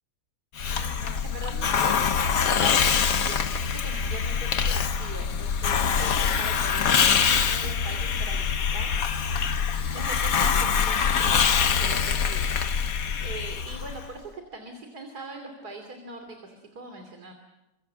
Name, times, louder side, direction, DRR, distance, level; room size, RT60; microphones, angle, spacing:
Hiss, 0.6-14.1, left 6 dB, 65° left, 1.6 m, -24 dB
voice 1, 0.7-9.3 9.9-17.3, right 2 dB, 75° right, 5 dB, 3.5 m, -42 dB
29.0 x 25.5 x 7.6 m, 1.0 s
omnidirectional pair, 1.7 m